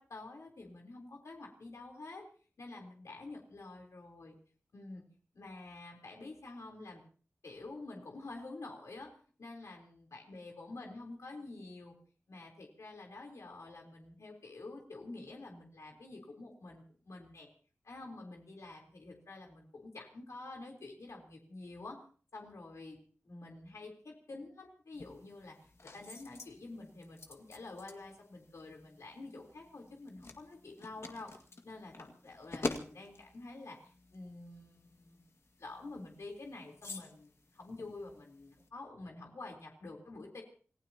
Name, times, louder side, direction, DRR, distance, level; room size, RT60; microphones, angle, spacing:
voice 1, 0.0-2.3 2.6-4.4 4.7-5.0 5.3-7.0 7.4-12.0 12.3-17.5 17.8-22.0 22.3-23.0 23.3-31.3 31.6-35.2 35.6-40.4, left 2 dB, 85° left, 1 dB, 3.8 m, -48 dB
sound 1, 24.9-38.7, left 3 dB, 65° left, 2.0 m, -48 dB
28.0 x 16.0 x 2.9 m, 0.42 s
wide cardioid pair, 80°, 5 cm